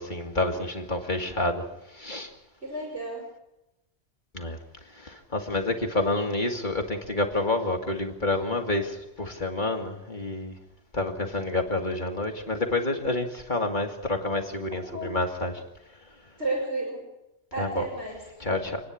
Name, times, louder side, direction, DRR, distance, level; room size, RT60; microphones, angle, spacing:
voice 1, 0.0-1.6 1.9-2.3 4.3-4.6 5.0-10.6 10.9-15.6 17.6-17.9 18.4-18.8, left 2 dB, 45° left, 3 dB, 2.7 m, -28 dB
voice 2, 2.6-3.3 6.0-6.1 14.9-15.2 16.4-17.0 17.5-18.2, right 2 dB, 80° right, -5 dB, 6.4 m, -32 dB
28.5 x 10.0 x 10.0 m, 0.90 s
omnidirectional pair, 1.1 m